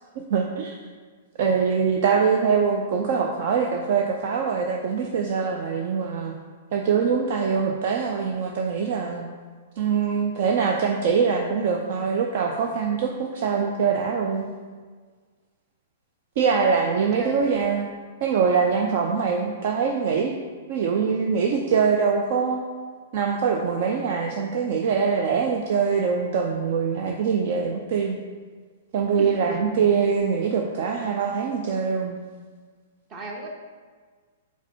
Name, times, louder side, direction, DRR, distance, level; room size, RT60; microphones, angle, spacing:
voice 1, 0.2-0.8 1.4-6.4 6.7-9.2 9.8-14.5 16.4-17.9 18.2-20.4 20.7-22.6 23.1-28.2 28.9-32.2, right 6 dB, 50° right, 2 dB, 0.5 m, -23 dB
voice 2, 16.8-17.5 29.2-29.6 33.1-33.5, right 2 dB, 30° right, 0 dB, 1.1 m, -36 dB
4.8 x 4.5 x 5.4 m, 1.5 s
figure-of-eight pair, 110°, 0 cm